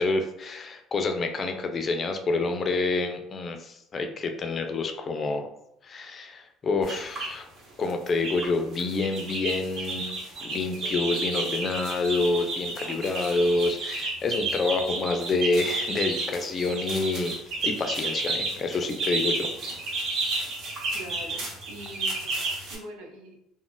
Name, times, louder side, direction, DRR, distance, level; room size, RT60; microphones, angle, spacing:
voice 1, 0.0-5.5 5.8-7.4 7.8-10.1 10.4-17.4 17.6-19.5, left 3 dB, 35° left, 6 dB, 0.4 m, -27 dB
sound 1, 6.8-7.3 7.8-8.5 8.7-22.8, right 3 dB, 55° right, 1.2 m, -31 dB
voice 2, 20.9-23.4, right 1 dB, 85° right, 1 dB, 0.7 m, -43 dB
2.4 x 2.1 x 3.8 m, 0.81 s
supercardioid pair, 105°, 0 cm